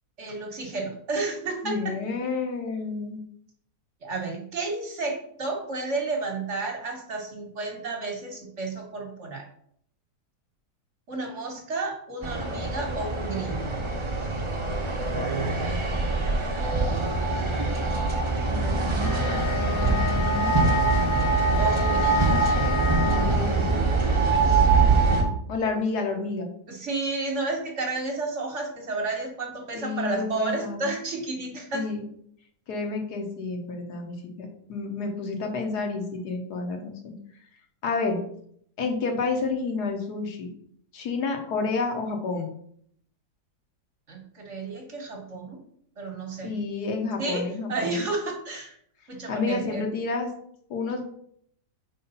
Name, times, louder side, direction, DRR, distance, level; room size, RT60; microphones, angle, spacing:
voice 1, 0.2-2.0 4.0-9.5 11.1-13.8 21.6-22.3 24.4-24.7 26.7-31.8 44.1-45.6 46.0-46.5 47.2-48.8 49.1-49.8, right 3 dB, 50° right, 2 dB, 1.3 m, -31 dB
voice 2, 1.6-3.2 18.5-20.6 23.0-23.8 25.5-26.5 29.7-30.9 31.7-32.1 32.7-37.1 37.8-38.2 38.8-40.5 40.9-42.5 46.4-48.1 49.3-50.3 50.7-51.0, left 4 dB, 70° left, 3 dB, 1.5 m, -30 dB
sound 1, 12.2-25.2, right 3 dB, 25° right, 0.7 m, -24 dB
Wind instrument woodwind instrument, 18.9-23.6, left 7 dB, 45° left, 0.8 m, -31 dB
4.8 x 4.2 x 5.5 m, 0.67 s
omnidirectional pair, 1.8 m